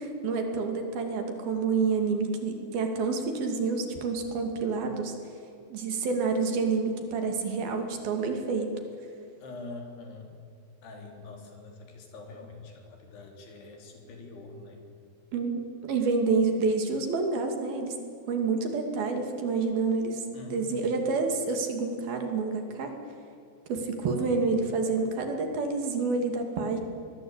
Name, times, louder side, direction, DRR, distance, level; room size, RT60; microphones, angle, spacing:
voice 1, 0.0-5.2 5.7-8.7 15.3-18.0 18.3-20.2 20.5-22.9 23.7-26.8, right 4 dB, 65° right, 4 dB, 4.2 m, -28 dB
voice 2, 9.4-10.3 10.8-14.8 20.3-21.0, left 2 dB, 80° left, 3 dB, 5.5 m, -44 dB
24.5 x 20.0 x 8.9 m, 2.5 s
omnidirectional pair, 4.7 m